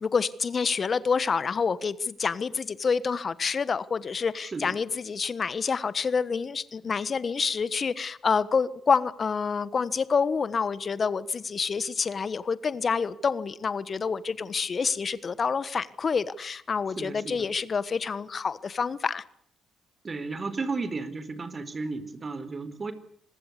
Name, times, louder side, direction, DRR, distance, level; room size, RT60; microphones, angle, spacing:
voice 1, 0.0-19.2, left 5 dB, 45° left, 17 dB, 1.3 m, -27 dB
voice 2, 17.0-17.5 20.0-22.9, right 3 dB, 40° right, 13 dB, 4.2 m, -33 dB
26.0 x 20.5 x 8.3 m, 0.65 s
supercardioid pair, 50°, 0 cm